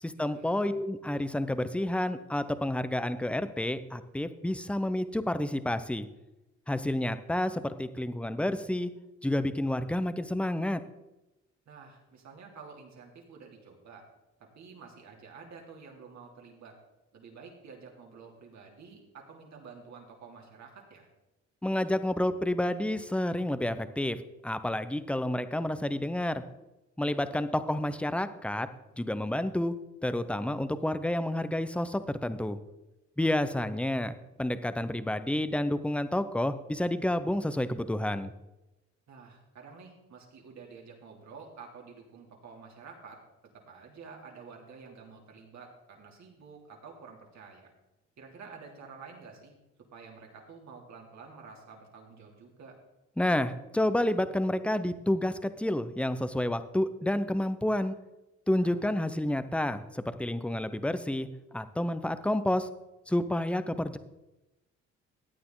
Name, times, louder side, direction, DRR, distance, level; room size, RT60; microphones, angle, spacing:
voice 1, 0.0-6.1 6.7-8.9 9.2-10.8 21.6-24.2 24.4-26.4 27.0-28.7 29.0-29.7 30.0-32.6 33.2-38.3 53.2-57.9 58.5-61.3 61.5-62.7 63.1-64.0, left 1 dB, 5° left, 12 dB, 0.8 m, -29 dB
voice 2, 11.7-14.0 14.4-16.7 17.1-21.1 27.0-27.4 39.1-43.2 43.7-47.7 48.2-49.5 49.9-52.8 58.6-58.9, right 5 dB, 65° right, 0 dB, 3.1 m, -50 dB
15.0 x 9.3 x 3.9 m, 0.99 s
cardioid pair, 90°, 30 cm